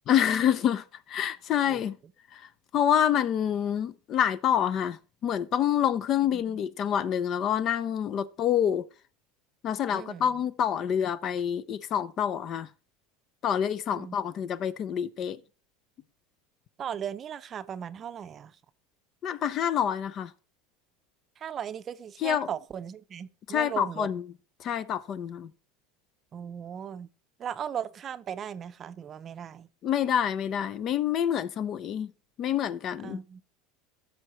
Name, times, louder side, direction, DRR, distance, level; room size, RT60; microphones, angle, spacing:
voice 1, 0.1-1.9 2.3-2.4 2.7-8.8 9.6-12.7 13.4-15.4 19.2-20.3 22.2-22.5 23.5-24.2 24.6-25.5 29.8-32.1 32.4-33.2, left 9 dB, 45° left, 0.6 m, -27 dB
voice 2, 9.9-10.3 13.9-14.2 16.8-18.6 21.4-24.1 26.3-27.1 27.4-29.7 33.0-33.4, right 8 dB, 35° right, 0.6 m, -37 dB
15.5 x 6.4 x 3.1 m
supercardioid pair, 115°, 0 cm